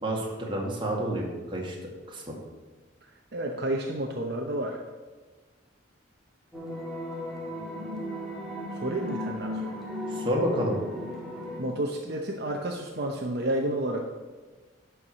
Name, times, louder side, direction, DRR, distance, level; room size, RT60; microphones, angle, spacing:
voice 1, 0.0-1.8 2.1-2.4 10.1-10.7, equal, 25° right, -2 dB, 1.9 m, -29 dB
voice 2, 3.3-4.8 8.8-9.8 11.6-14.1, right 1 dB, 55° right, 1 dB, 0.8 m, -30 dB
sound 1, 6.5-11.6, left 1 dB, ahead, 1.8 m, -35 dB
11.5 x 4.7 x 6.4 m, 1.3 s
head